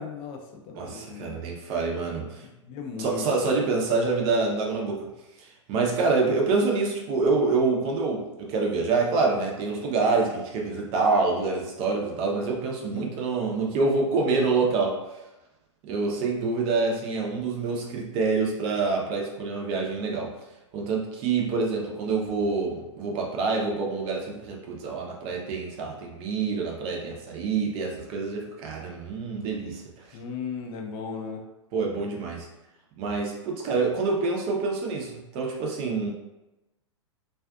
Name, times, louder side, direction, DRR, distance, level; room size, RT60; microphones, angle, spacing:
voice 1, 0.0-1.4 2.2-2.3 2.6-3.5 12.9-13.1 30.1-31.4, left 5 dB, 35° left, 1 dB, 0.5 m, -36 dB
voice 2, 0.7-2.5 3.0-5.1 5.4-15.0 15.8-20.3 20.7-29.8 30.1-30.2 31.7-32.5 33.0-36.1, right 4 dB, 35° right, 0 dB, 0.6 m, -26 dB
2.4 x 2.4 x 2.3 m, 0.99 s
figure-of-eight pair, 100°, 16 cm